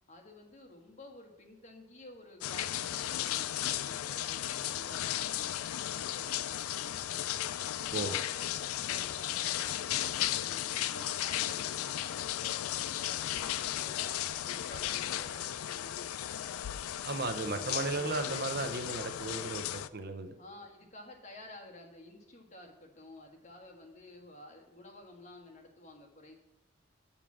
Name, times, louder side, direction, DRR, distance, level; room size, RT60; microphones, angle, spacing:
voice 1, 0.1-7.2 7.7-14.2 14.4-16.4 17.5-18.2 20.4-26.3, left 1 dB, 35° left, 1 dB, 1.4 m, -53 dB
sound 1, 2.4-19.9, left 12 dB, 90° left, 0.4 m, -35 dB
voice 2, 17.0-20.3, right 3 dB, 50° right, 8 dB, 0.6 m, -35 dB
7.2 x 7.0 x 6.1 m, 0.95 s
head